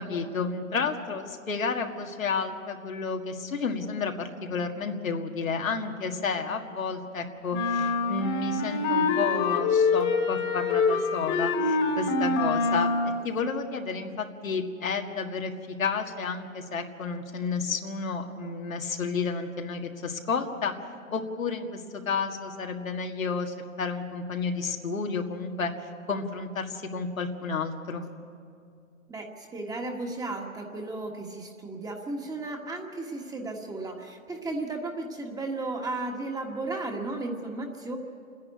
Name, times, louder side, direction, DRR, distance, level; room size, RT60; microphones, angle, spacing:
voice 1, 0.0-20.7 21.1-21.8 22.1-25.7 26.1-28.1, left 5 dB, 85° left, 3 dB, 1.9 m, -31 dB
sound 1, 7.5-13.3, left 4 dB, 35° left, 1.9 m, -25 dB
voice 2, 29.1-38.0, right 2 dB, 10° right, 2 dB, 1.5 m, -34 dB
28.0 x 10.5 x 9.5 m, 2.4 s
hypercardioid pair, 125°, 40 cm